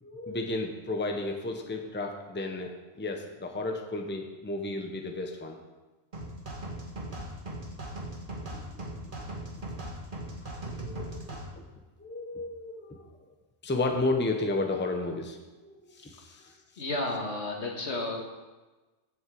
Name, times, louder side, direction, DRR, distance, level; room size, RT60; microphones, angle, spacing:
voice 1, 0.0-5.6 8.7-8.8 10.4-10.5 10.8-11.7 12.0-13.1 13.6-16.5, left 2 dB, 10° left, 3 dB, 0.8 m, -33 dB
sound 1, 6.1-11.5, right 1 dB, 50° right, 1.7 m, -39 dB
voice 2, 16.3-18.2, left 2 dB, 75° left, 0 dB, 1.9 m, -33 dB
8.0 x 6.2 x 7.7 m, 1.2 s
omnidirectional pair, 1.1 m